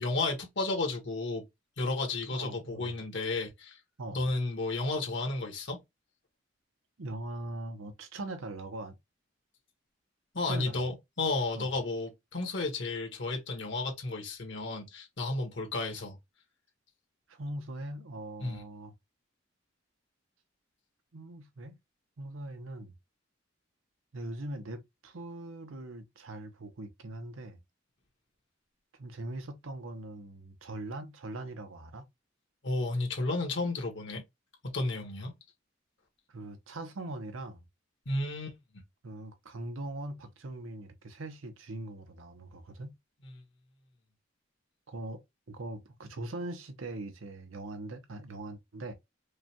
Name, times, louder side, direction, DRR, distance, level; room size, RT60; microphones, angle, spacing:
voice 1, 0.0-1.4 1.8-3.8 4.1-5.8 10.3-16.2 18.4-18.6 32.6-34.2 34.7-35.3 38.0-38.6 43.2-43.3, left 2 dB, 65° left, 1.4 m, -32 dB
voice 2, 2.3-3.0 4.0-4.3 7.0-8.9 10.5-10.8 11.6-11.7 17.3-18.9 21.1-21.8 22.2-22.9 24.1-27.6 28.9-32.0 36.3-37.6 39.0-42.9 44.9-45.2 45.5-48.9, right 2 dB, 85° right, 0.8 m, -41 dB
4.9 x 2.2 x 2.9 m
head